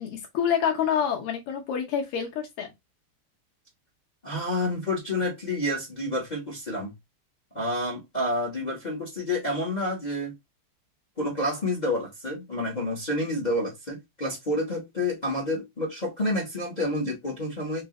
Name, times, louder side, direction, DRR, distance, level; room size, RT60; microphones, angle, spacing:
voice 1, 0.0-2.7, left 8 dB, 80° left, 2.0 m, -27 dB
voice 2, 4.2-6.9 7.5-10.3 11.2-17.8, left 1 dB, 45° left, 0.5 m, -29 dB
4.7 x 2.1 x 3.6 m
omnidirectional pair, 2.4 m